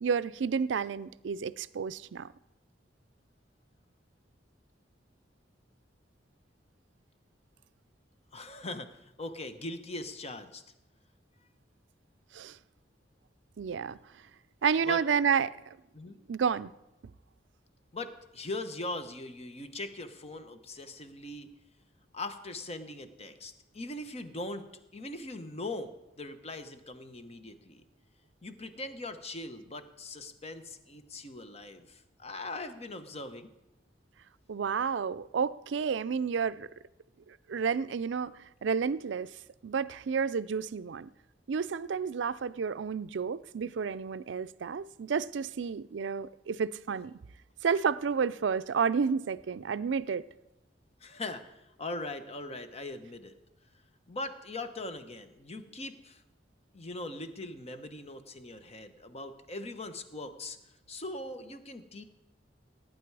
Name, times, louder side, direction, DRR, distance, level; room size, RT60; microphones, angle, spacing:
voice 1, 0.0-2.3 12.3-12.6 13.6-14.0 14.6-15.6 16.3-16.7 34.5-36.7 37.3-39.3 39.6-41.1 41.5-47.2 47.6-50.2, right 6 dB, 75° right, 0.4 m, -31 dB
voice 2, 8.3-10.6 14.9-15.0 15.9-16.2 17.9-21.5 22.1-24.7 24.9-27.8 28.4-33.5 51.0-53.3 54.1-56.2 56.7-60.6 60.9-62.0, left 2 dB, 35° left, 1.0 m, -40 dB
17.5 x 9.1 x 4.7 m
head